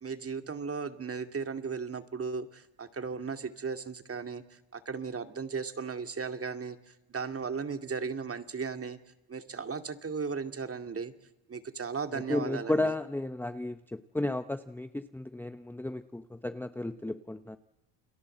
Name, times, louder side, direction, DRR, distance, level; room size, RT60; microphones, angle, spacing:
voice 1, 0.0-9.0 9.3-11.1 11.5-12.9, right 5 dB, 25° right, 7 dB, 2.4 m, -36 dB
voice 2, 12.1-17.6, left 2 dB, 5° left, 9 dB, 0.9 m, -33 dB
29.5 x 22.5 x 7.9 m, 0.97 s
supercardioid pair, 100°, 50 cm